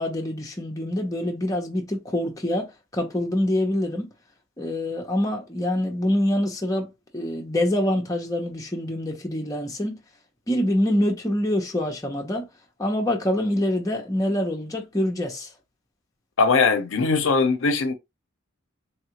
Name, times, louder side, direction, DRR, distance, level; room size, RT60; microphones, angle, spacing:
voice 1, 0.0-4.1 4.6-6.9 7.1-10.0 10.5-12.5 12.8-15.5, left 1 dB, 15° left, 0.7 m, -25 dB
voice 2, 16.4-17.9, left 4 dB, 65° left, 0.6 m, -20 dB
3.4 x 2.3 x 2.9 m
head